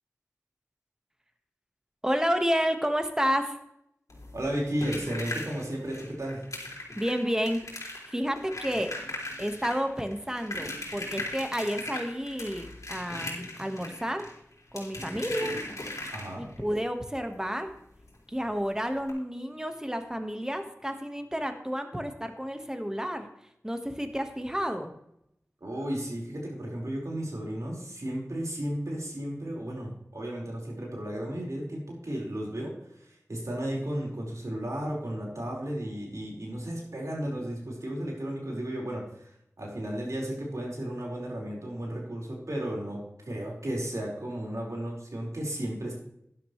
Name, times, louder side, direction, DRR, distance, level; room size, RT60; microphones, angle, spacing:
voice 1, 2.0-3.6 7.0-8.9 9.4-14.3 14.7-15.5 16.4-17.7 18.3-23.3 23.6-24.9, equal, 10° right, 6 dB, 1.5 m, -30 dB
sound 1, 4.1-16.6 18.1-18.2 18.5-18.6 19.0-19.1, left 2 dB, 75° left, 3.3 m, -39 dB
voice 2, 4.3-6.4 16.1-16.4 25.6-32.7 33.0-39.3 39.6-43.0 43.3-45.9, right 1 dB, 70° right, -3 dB, 4.8 m, -34 dB
12.5 x 11.0 x 3.2 m, 0.77 s
wide cardioid pair, 50°, 6 cm